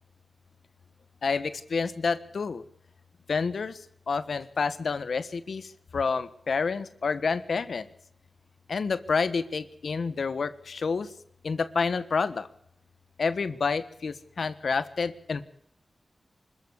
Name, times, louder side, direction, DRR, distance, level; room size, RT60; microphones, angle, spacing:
voice 1, 1.2-2.6 3.3-3.8 4.1-7.9 8.7-11.1 11.4-12.5 13.2-15.4, left 5 dB, 80° left, 14 dB, 1.4 m, -29 dB
25.0 x 14.5 x 8.3 m, 0.72 s
cardioid pair, 45°, 0 cm